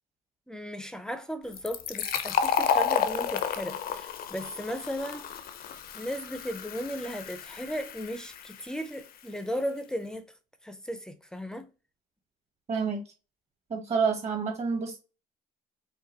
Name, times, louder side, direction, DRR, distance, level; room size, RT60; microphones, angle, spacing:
voice 1, 0.5-5.4 5.7-10.3 10.6-11.7, equal, 5° left, 0.6 m, -36 dB
Fill (with liquid), 1.5-8.9, left 8 dB, 60° left, 0.7 m, -31 dB
voice 2, 12.7-13.0 13.7-15.0, right 5 dB, 40° right, 1.6 m, -28 dB
5.4 x 2.4 x 3.9 m
cardioid pair, 110°, 17 cm